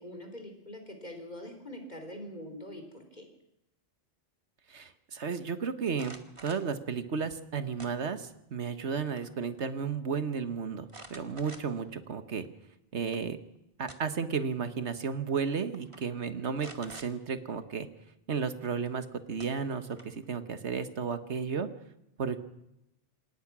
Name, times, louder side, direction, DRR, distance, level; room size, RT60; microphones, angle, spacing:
voice 1, 0.0-3.2, left 1 dB, 40° left, 5 dB, 3.9 m, -44 dB
voice 2, 4.7-6.2 6.4-12.4 12.9-13.4 13.8-17.9 18.3-21.7 22.2-22.4, right 5 dB, 80° right, 11 dB, 1.7 m, -33 dB
sound 1, 5.9-6.7 7.8-8.4 8.8-9.3 9.6-9.7 10.9-11.9 12.4-12.5 13.6-14.3 15.3-15.4 15.7-16.0 16.6-17.1 18.9-19.0 19.4-20.2, right 2 dB, 30° right, 1.8 m, -49 dB
27.5 x 17.5 x 6.2 m, 0.84 s
omnidirectional pair, 1.1 m